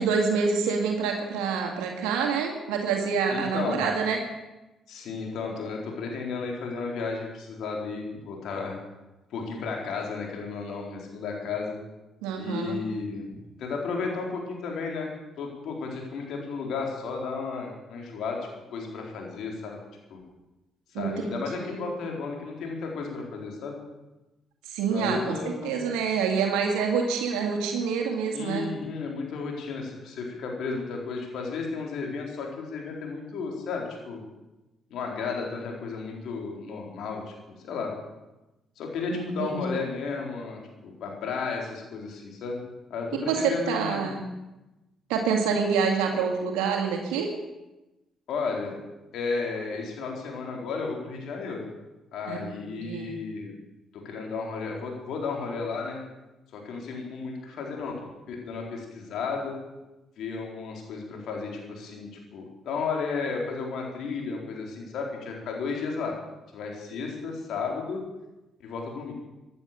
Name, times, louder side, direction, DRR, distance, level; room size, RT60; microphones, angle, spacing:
voice 1, 0.0-4.2 12.2-12.8 20.9-21.9 24.7-28.7 39.1-39.6 43.2-44.2 45.1-47.3 52.3-53.1, right 5 dB, 85° right, 2 dB, 2.1 m, -27 dB
voice 2, 3.3-3.9 4.9-8.8 9.3-11.8 12.4-19.8 20.1-20.2 20.9-23.8 24.9-25.8 28.3-34.2 34.9-37.3 37.6-37.9 38.8-42.6 42.9-44.1 48.3-48.8 49.1-51.7 52.1-53.5 54.0-56.0 56.5-57.9 58.3-59.6 60.2-66.2 66.5-68.0 68.6-69.1, left 4 dB, 70° left, 0 dB, 4.3 m, -33 dB
16.5 x 11.0 x 7.0 m, 1.0 s
supercardioid pair, 60°, 0 cm